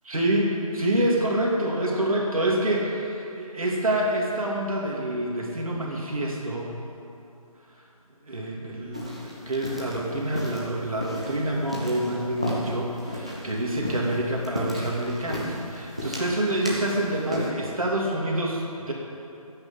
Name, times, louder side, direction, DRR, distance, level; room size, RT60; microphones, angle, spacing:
voice 1, 0.0-6.8 8.2-18.9, right 1 dB, 65° right, -3 dB, 2.8 m, -27 dB
sound 1, 8.9-17.5, left 1 dB, 10° right, 0.6 m, -34 dB
13.0 x 8.7 x 7.4 m, 2.8 s
figure-of-eight pair, 175°, 19 cm